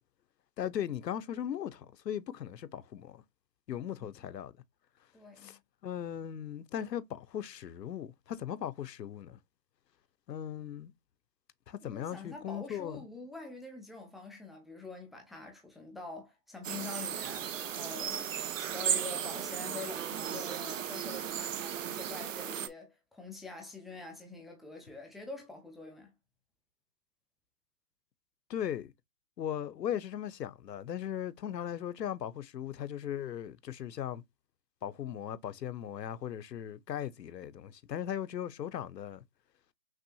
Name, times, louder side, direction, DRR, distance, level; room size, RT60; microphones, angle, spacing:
voice 1, 0.6-3.2 3.7-4.5 5.4-9.4 10.3-10.9 11.7-13.0 28.5-28.9 29.4-34.2 34.8-39.2, left 10 dB, 85° left, 0.7 m, -38 dB
voice 2, 5.1-5.6 11.8-18.3 18.6-26.1, left 3 dB, ahead, 0.3 m, -45 dB
sound 1, 16.6-22.7, right 9 dB, 50° right, 0.5 m, -35 dB
5.9 x 2.6 x 2.7 m
hypercardioid pair, 155°, 49 cm